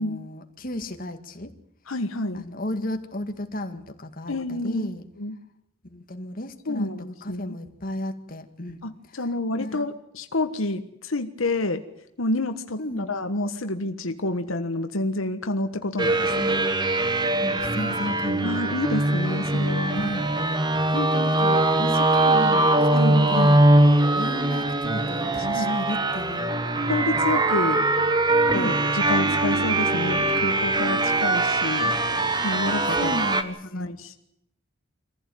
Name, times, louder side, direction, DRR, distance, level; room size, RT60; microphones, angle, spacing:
voice 1, 0.0-1.5 2.3-5.0 5.8-6.9 7.2-8.8 9.6-9.8 12.8-13.1 17.4-18.6 19.9-20.2 20.9-22.7 23.0-23.7 24.2-26.6 28.5-28.7 32.9-33.9, left 1 dB, 45° left, 6 dB, 2.1 m, -33 dB
voice 2, 1.9-2.4 4.3-4.9 5.2-5.3 6.7-7.6 8.8-11.8 12.2-16.6 18.4-20.1 22.9-23.5 25.3-25.8 26.8-27.9 28.5-31.9 32.4-33.1 33.7-34.2, left 2 dB, 80° left, 8 dB, 1.4 m, -29 dB
sound 1, 16.0-33.4, right 2 dB, 20° right, 1.5 m, -22 dB
24.5 x 15.5 x 9.2 m, 0.80 s
head